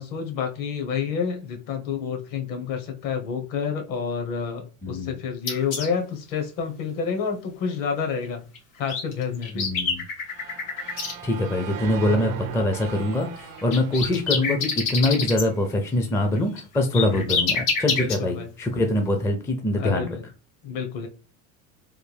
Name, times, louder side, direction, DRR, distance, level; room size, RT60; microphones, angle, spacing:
voice 1, 0.0-8.4 8.8-9.7 16.9-17.4 17.9-18.5 19.8-20.3 20.6-21.1, left 6 dB, 55° left, 4 dB, 1.1 m, -29 dB
voice 2, 4.8-5.1 9.5-10.0 11.2-20.1, left 1 dB, 5° left, 3 dB, 0.4 m, -24 dB
sound 1, 5.5-5.9 8.5-8.6 8.9-11.1 13.4-15.4 16.4-18.2, left 5 dB, 85° left, 1.5 m, -26 dB
sound 2, 10.3-15.3, right 7 dB, 85° right, 0.7 m, -38 dB
3.4 x 2.3 x 3.3 m, 0.34 s
supercardioid pair, 105°, 40 cm